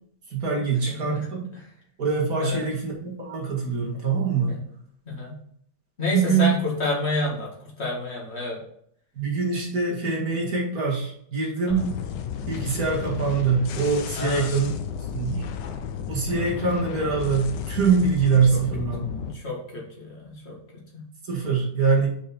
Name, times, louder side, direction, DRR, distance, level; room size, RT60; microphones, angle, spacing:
voice 1, 0.3-1.5 2.0-4.6 6.1-6.5 9.1-11.9 12.5-14.7 15.1-15.4 16.1-19.2 21.2-22.1, right 5 dB, 50° right, -3 dB, 2.4 m, -24 dB
voice 2, 0.9-1.3 1.5-1.7 2.4-2.6 4.5-4.6 5.1-5.3 6.0-8.6 14.1-14.5 16.3-16.5 18.5-18.6 19.3-21.1, left 2 dB, 35° left, -3 dB, 2.1 m, -30 dB
sound 1, 11.7-19.3, left 7 dB, 75° left, 1.3 m, -33 dB
6.3 x 5.2 x 4.2 m, 0.67 s
omnidirectional pair, 2.0 m